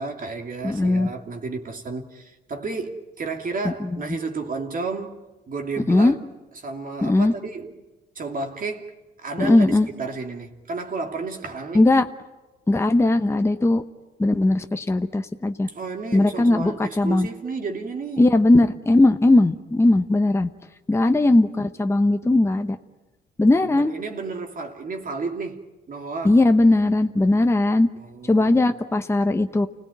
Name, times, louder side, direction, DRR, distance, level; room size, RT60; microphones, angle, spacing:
voice 1, 0.0-6.2 6.6-7.8 8.1-8.9 9.2-11.8 15.7-18.3 23.5-25.6 25.9-26.4 27.9-28.7, right 3 dB, 45° right, 2.9 m, -32 dB
voice 2, 0.6-1.1 3.6-3.9 5.9-6.2 7.0-7.3 9.4-9.9 11.7-12.1 12.7-13.8 14.2-15.7 16.1-17.3 18.2-20.5 20.9-22.8 23.4-23.9 26.2-27.9 28.2-29.7, left 2 dB, 15° left, 1.0 m, -18 dB
29.5 x 17.5 x 9.4 m
cardioid pair, 90°, 20 cm